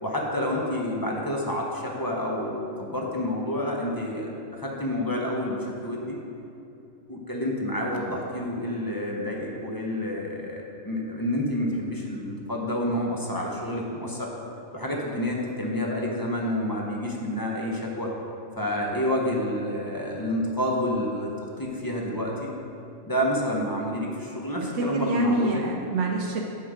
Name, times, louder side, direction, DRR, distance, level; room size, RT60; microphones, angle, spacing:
voice 1, 0.0-6.2 7.1-14.3 14.7-18.1 18.6-22.5 23.0-25.6, left 1 dB, 20° left, -2 dB, 0.7 m, -29 dB
voice 2, 24.7-26.4, right 2 dB, 70° right, 0 dB, 0.9 m, -26 dB
7.8 x 5.6 x 4.9 m, 2.8 s
omnidirectional pair, 1.3 m